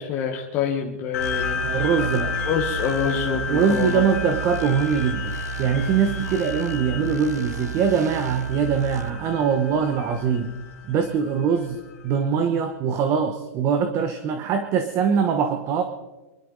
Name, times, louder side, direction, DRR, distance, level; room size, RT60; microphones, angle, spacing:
voice 1, 0.0-1.8 2.4-4.1, left 7 dB, 30° left, 0 dB, 1.4 m, -26 dB
sound 1, 1.1-12.0, left 6 dB, 65° left, 2.6 m, -32 dB
sound 2, 1.2-9.1, right 7 dB, 85° right, 0.7 m, -33 dB
voice 2, 1.6-2.3 3.3-10.6 10.9-15.8, right 7 dB, 30° right, 7 dB, 1.1 m, -23 dB
24.5 x 12.0 x 4.0 m, 1.1 s
hypercardioid pair, 150°, 9 cm